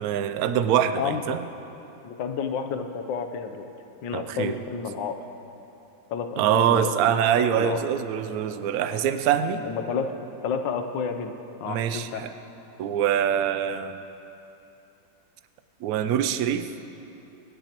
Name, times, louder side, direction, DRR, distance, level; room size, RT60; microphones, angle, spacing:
voice 1, 0.0-1.4 4.1-4.5 6.4-9.7 11.6-12.3 12.8-14.0 15.8-16.7, right 9 dB, 70° right, 10 dB, 0.9 m, -24 dB
voice 2, 1.0-1.4 2.0-3.7 4.0-5.2 6.1-7.8 9.6-10.1 10.4-11.3 11.6-12.2, left 6 dB, 85° left, 7 dB, 1.5 m, -30 dB
24.5 x 11.0 x 3.0 m, 2.9 s
omnidirectional pair, 2.0 m